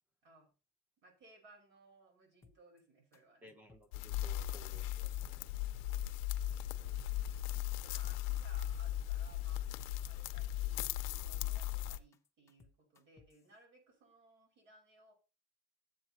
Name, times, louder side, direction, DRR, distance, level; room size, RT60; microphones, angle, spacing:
voice 1, 1.0-3.5 4.3-4.5 7.8-9.7 10.0-15.1, right 2 dB, 65° right, 5.8 m, -62 dB
sound 1, 2.4-2.8 3.1-3.2 3.5-3.9 4.2-4.9 5.2-6.0 6.3-6.7 7.0-8.4 8.7-8.8 9.1-9.5 9.8-10.5 10.8-11.6 11.9-13.4, left 4 dB, 15° left, 0.7 m, -63 dB
voice 2, 3.4-5.4 6.8-7.3 7.8-7.9, equal, 10° right, 1.0 m, -59 dB
sound 2, 3.9-12.0, left 13 dB, 80° left, 0.6 m, -38 dB
13.0 x 8.2 x 3.0 m
cardioid pair, 180°, 18 cm